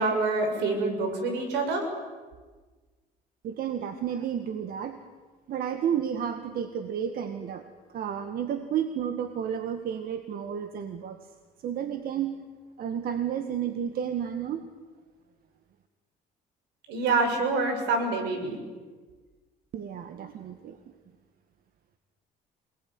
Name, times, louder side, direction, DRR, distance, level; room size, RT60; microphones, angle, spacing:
voice 1, 0.0-1.9 16.9-18.6, right 3 dB, 85° right, 5 dB, 6.7 m, -26 dB
voice 2, 3.4-5.0 5.5-11.3 11.6-12.4 12.8-14.7 19.7-20.9, right 8 dB, 60° right, 8 dB, 1.8 m, -32 dB
28.0 x 20.0 x 9.7 m, 1.3 s
cardioid pair, 110°, 17 cm